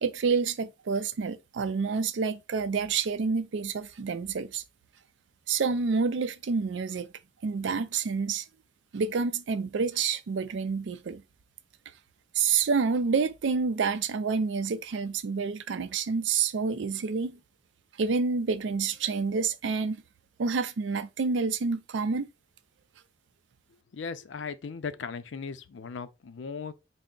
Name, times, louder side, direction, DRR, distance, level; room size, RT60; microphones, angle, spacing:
voice 1, 0.0-4.6 5.5-7.1 7.4-8.5 8.9-11.2 12.3-17.4 18.0-20.0 20.4-22.3, right 5 dB, 75° right, 0.4 m, -28 dB
voice 2, 23.9-26.7, left 5 dB, 85° left, 0.5 m, -37 dB
4.3 x 2.0 x 3.7 m
head